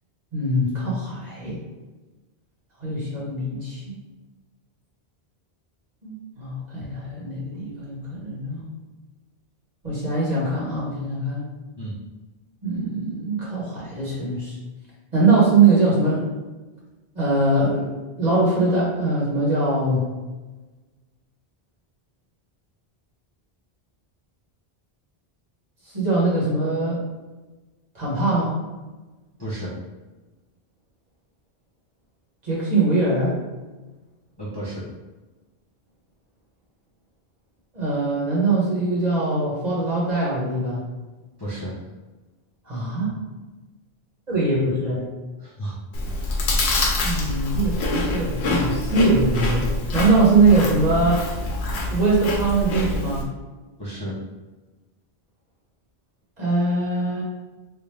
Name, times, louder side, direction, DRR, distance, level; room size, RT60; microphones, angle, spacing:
voice 1, 0.3-1.6 2.8-4.0 6.0-8.6 9.8-11.4 12.6-14.5 15.1-16.3 17.1-17.9 18.2-20.0 25.9-27.0 27.9-28.5 32.4-33.4 37.7-40.8 42.6-43.1 44.3-45.0 47.0-51.2 51.9-53.3 56.4-57.2, right 3 dB, 40° right, -7 dB, 1.3 m, -22 dB
voice 2, 29.4-29.7 34.4-34.8 41.4-41.8 45.4-45.8 53.8-54.2, right 1 dB, 30° left, -8 dB, 0.6 m, -32 dB
Chewing mastication, 45.9-53.2, left 2 dB, 85° left, 0.9 m, -25 dB
3.5 x 2.4 x 3.2 m, 1.2 s
omnidirectional pair, 1.1 m